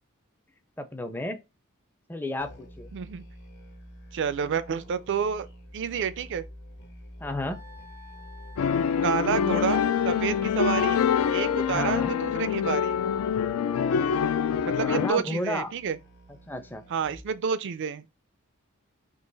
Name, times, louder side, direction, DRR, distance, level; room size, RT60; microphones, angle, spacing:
voice 1, 0.8-1.4 2.1-2.9 7.2-7.6 11.7-12.2 14.8-15.7 16.5-16.8, left 1 dB, 10° left, 0.5 m, -32 dB
Musical instrument, 2.4-17.4, equal, 55° left, 1.0 m, -47 dB
voice 2, 2.9-3.2 4.1-5.5 5.7-6.4 9.0-11.0 11.3-13.0 14.6-16.0 16.9-18.1, right 7 dB, 55° right, 0.4 m, -29 dB
Wind instrument woodwind instrument, 7.5-12.4, left 3 dB, 90° right, 0.8 m, -51 dB
sound 1, 8.6-15.1, left 7 dB, 75° left, 0.3 m, -25 dB
3.8 x 2.8 x 3.9 m
head